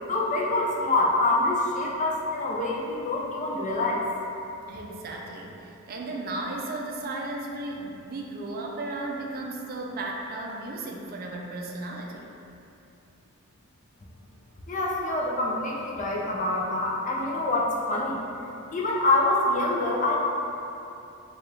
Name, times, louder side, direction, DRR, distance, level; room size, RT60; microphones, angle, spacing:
voice 1, 0.0-4.0 14.7-18.2 18.7-20.2, left 2 dB, 35° left, -3 dB, 0.5 m, -26 dB
voice 2, 4.7-12.3, right 2 dB, 40° right, 0 dB, 0.4 m, -35 dB
4.7 x 2.3 x 3.2 m, 2.8 s
head